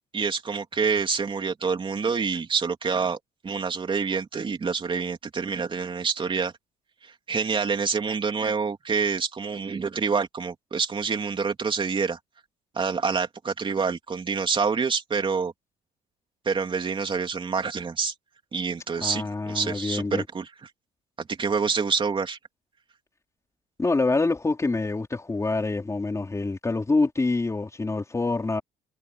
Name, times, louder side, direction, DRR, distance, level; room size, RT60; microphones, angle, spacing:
voice 1, 0.1-3.2 3.4-6.5 7.0-12.2 12.7-15.5 16.4-18.1 18.5-20.5 21.3-22.4, right 5 dB, 30° right, 3.4 m, -27 dB
voice 2, 19.0-20.2 23.8-28.6, left 3 dB, 15° left, 4.1 m, -26 dB
cardioid pair, 110°, 17 cm